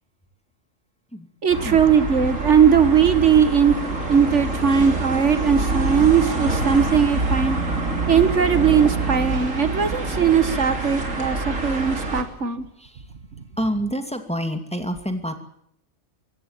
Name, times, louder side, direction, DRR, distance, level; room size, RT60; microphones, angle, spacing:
voice 1, 1.4-3.8 4.1-7.6 8.1-12.7 13.4-13.5, right 7 dB, 65° right, 11 dB, 1.8 m, -19 dB
sound 1, 1.5-12.2, right 3 dB, 85° right, 3.9 m, -26 dB
voice 2, 13.6-15.3, equal, 5° left, 7 dB, 2.5 m, -28 dB
24.0 x 16.5 x 9.0 m, 0.72 s
omnidirectional pair, 1.3 m